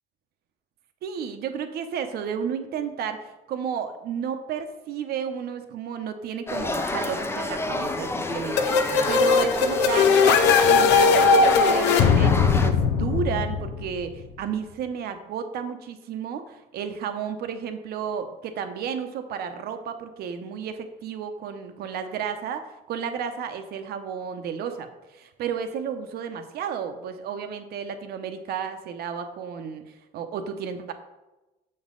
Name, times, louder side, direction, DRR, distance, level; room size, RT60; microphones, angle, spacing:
voice 1, 1.0-29.8 30.1-30.9, right 7 dB, 70° right, 8 dB, 0.8 m, -32 dB
sound 1, 6.5-12.7, left 2 dB, 15° left, 0.6 m, -29 dB
sound 2, 8.6-14.2, left 5 dB, 90° left, 0.6 m, -19 dB
7.0 x 5.4 x 3.8 m, 1.0 s
cardioid pair, 110°, 17 cm